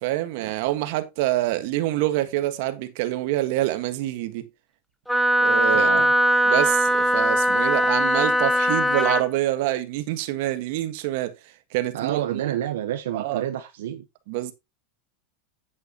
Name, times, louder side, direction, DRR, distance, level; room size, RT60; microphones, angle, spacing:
voice 1, 0.0-4.5 5.4-5.9 6.5-11.3 11.7-12.2 13.1-13.4 14.3-14.5, right 15 dB, 65° right, 1.6 m, -26 dB
Wind instrument woodwind instrument, 5.1-9.3, equal, ahead, 1.1 m, -20 dB
voice 2, 5.7-6.1 11.9-14.0, right 11 dB, 85° right, 1.2 m, -29 dB
9.2 x 8.7 x 3.0 m
supercardioid pair, 135°, 0 cm